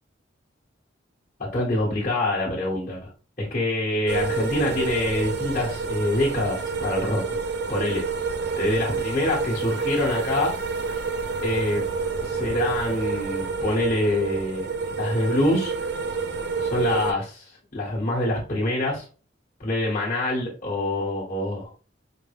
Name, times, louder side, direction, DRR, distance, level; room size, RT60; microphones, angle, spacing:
voice 1, 1.4-3.0 3.4-7.4 7.7-8.1 8.6-10.5 11.4-11.8 12.2-14.7 15.0-15.7 16.6-19.0 19.6-21.7, left 1 dB, 45° left, -6 dB, 1.5 m, -25 dB
sound 1, 4.1-17.1, right 4 dB, 60° right, 0.4 m, -28 dB
5.1 x 2.2 x 3.4 m, 0.37 s
head